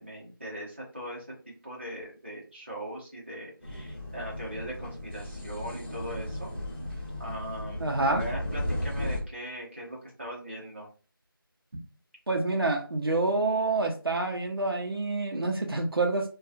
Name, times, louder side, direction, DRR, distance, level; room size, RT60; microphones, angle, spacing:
voice 1, 0.0-6.5 7.2-10.9, equal, 30° right, -4 dB, 0.9 m, -40 dB
sound 1, 3.6-9.2, left 1 dB, 30° left, 1.1 m, -35 dB
voice 2, 7.8-8.2 12.3-16.3, right 3 dB, 80° right, 2 dB, 0.7 m, -27 dB
2.7 x 2.3 x 2.4 m, 0.35 s
figure-of-eight pair, 180°, 12 cm